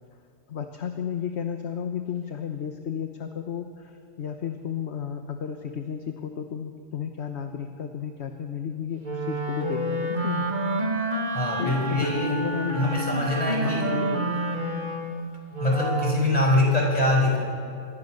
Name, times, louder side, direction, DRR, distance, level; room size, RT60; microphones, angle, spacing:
voice 1, 0.5-10.5 11.6-13.0 13.6-14.4, left 8 dB, 60° left, 6 dB, 1.4 m, -33 dB
Wind instrument woodwind instrument, 9.0-16.4, right 1 dB, 35° right, 2.4 m, -29 dB
voice 2, 11.3-12.4 12.7-13.9 15.6-17.4, left 1 dB, 30° left, -1 dB, 6.3 m, -23 dB
25.0 x 21.5 x 6.6 m, 2.4 s
omnidirectional pair, 1.3 m